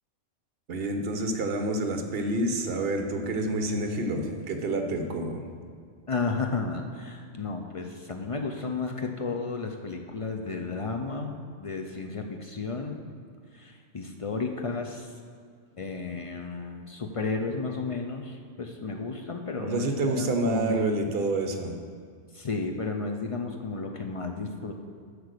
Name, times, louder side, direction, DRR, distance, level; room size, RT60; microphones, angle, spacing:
voice 1, 0.7-5.4 19.6-21.8, right 2 dB, 55° right, 5 dB, 1.0 m, -28 dB
voice 2, 6.1-13.0 13.5-15.1 15.8-20.8 22.3-24.7, left 4 dB, 55° left, 3 dB, 0.3 m, -33 dB
8.2 x 5.1 x 6.5 m, 2.1 s
omnidirectional pair, 1.3 m